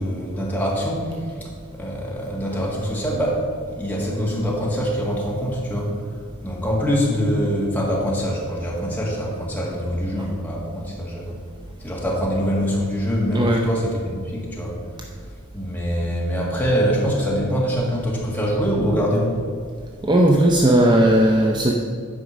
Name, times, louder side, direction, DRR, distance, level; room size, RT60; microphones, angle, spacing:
voice 1, 0.0-3.4 3.7-5.9 6.4-11.3 11.8-14.8 15.5-19.3, equal, 10° left, -4 dB, 1.9 m, -24 dB
voice 2, 13.3-13.6 20.0-21.8, right 1 dB, 20° right, 0 dB, 0.5 m, -16 dB
9.4 x 5.2 x 6.1 m, 2.1 s
head